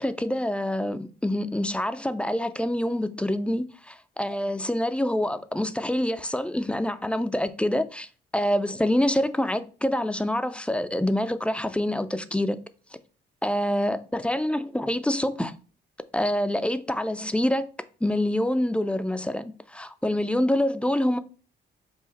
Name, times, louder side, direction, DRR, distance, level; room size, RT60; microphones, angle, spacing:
voice 1, 0.0-8.1 8.3-12.6 13.4-15.5 16.1-17.7 18.0-21.2, left 1 dB, 5° left, 0.3 m, -26 dB
4.8 x 2.5 x 4.0 m
cardioid pair, 90°, 20 cm